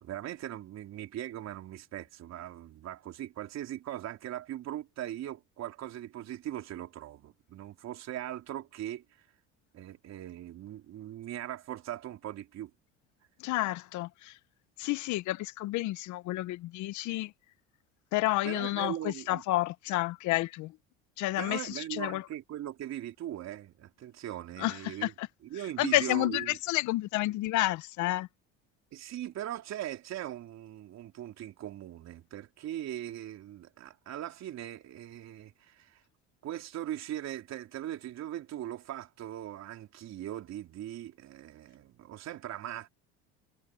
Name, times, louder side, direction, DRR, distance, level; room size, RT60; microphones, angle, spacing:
voice 1, 0.0-9.0 9.7-12.7 18.4-19.4 21.4-25.1 25.4-26.6 28.9-36.0 36.4-42.9, right 12 dB, 55° right, 3.8 m, -40 dB
voice 2, 13.4-14.4 14.8-17.3 18.1-20.7 21.2-22.2 24.6-25.3 25.8-28.3, left 17 dB, 65° left, 1.1 m, -30 dB
supercardioid pair, 90°, 32 cm